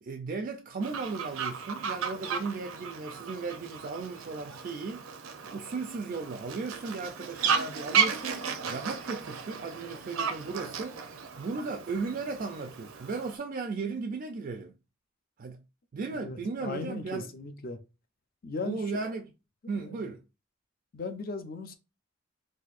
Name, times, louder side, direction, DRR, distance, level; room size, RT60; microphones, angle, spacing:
voice 1, 0.0-5.1 5.4-11.0 11.4-14.7 15.4-15.6 15.9-17.3 18.6-19.3 19.7-20.2, right 4 dB, 40° right, 0.3 m, -36 dB
Fowl, 0.8-13.4, right 6 dB, 90° right, 0.5 m, -34 dB
voice 2, 16.1-17.8 18.4-18.8 19.7-20.1 20.9-21.7, left 3 dB, 45° left, 0.5 m, -37 dB
4.0 x 2.6 x 2.4 m
head